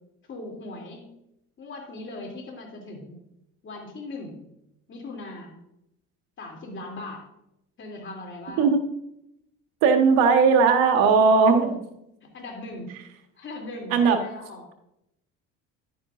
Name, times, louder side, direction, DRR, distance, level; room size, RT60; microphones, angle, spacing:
voice 1, 0.3-1.1 1.6-3.1 3.6-4.4 4.9-5.6 6.4-7.2 7.8-8.7 12.2-12.9 13.4-14.7, left 2 dB, 40° left, 1 dB, 2.7 m, -39 dB
voice 2, 9.8-11.8 13.9-14.2, right 5 dB, 90° right, 6 dB, 1.2 m, -18 dB
11.0 x 9.2 x 2.5 m, 0.81 s
supercardioid pair, 100°, 32 cm